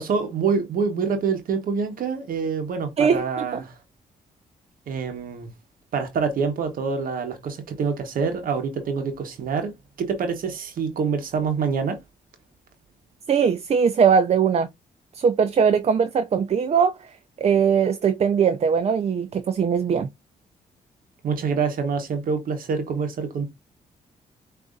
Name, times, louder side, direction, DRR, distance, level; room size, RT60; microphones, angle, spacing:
voice 1, 0.0-3.7 4.9-5.5 5.9-9.7 10.0-12.0 21.2-23.5, right 5 dB, 70° right, 1.0 m, -26 dB
voice 2, 13.3-14.7 15.1-17.0 17.4-20.1, right 6 dB, 45° right, 0.5 m, -20 dB
6.3 x 2.6 x 2.3 m
cardioid pair, 75°, 15 cm